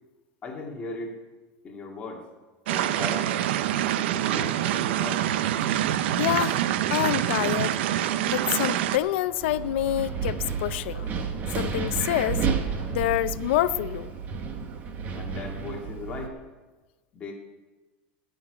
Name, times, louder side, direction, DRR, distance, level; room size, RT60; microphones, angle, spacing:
voice 1, 0.4-1.2 1.6-2.2 2.7-3.4 4.1-5.3 15.1-16.4 17.1-17.3, left 3 dB, 20° left, 0 dB, 2.1 m, -38 dB
sound 1, 2.7-9.0, right 12 dB, 75° right, 0.7 m, -26 dB
voice 2, 6.2-6.6 6.9-7.8 8.3-11.1 11.6-12.5 12.9-14.1, left 14 dB, 70° left, 13 dB, 0.5 m, -27 dB
sound 2, 7.7-12.9, right 1 dB, 10° right, 6.0 m, -49 dB
Wind, 9.4-16.3, right 6 dB, 25° right, 1.2 m, -31 dB
17.5 x 6.5 x 9.9 m, 1.3 s
supercardioid pair, 170°, 6 cm